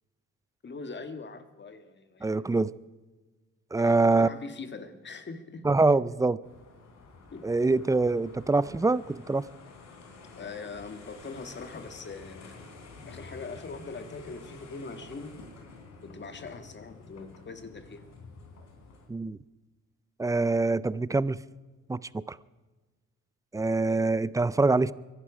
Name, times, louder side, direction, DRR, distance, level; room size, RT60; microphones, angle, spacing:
voice 1, 0.6-2.4 3.8-5.7 7.3-7.5 10.4-12.6 13.0-15.4 16.0-18.1 23.8-24.2, left 4 dB, 35° left, 9 dB, 1.6 m, -42 dB
voice 2, 2.2-2.7 3.7-4.3 5.6-6.4 7.4-9.4 19.1-19.4 20.2-21.4 21.9-22.4 23.5-24.9, right 3 dB, 10° right, 19 dB, 0.4 m, -24 dB
sound 1, 6.4-19.1, left 3 dB, 65° left, 3.5 m, -49 dB
23.5 x 11.5 x 4.9 m, 1.3 s
cardioid pair, 90°, 30 cm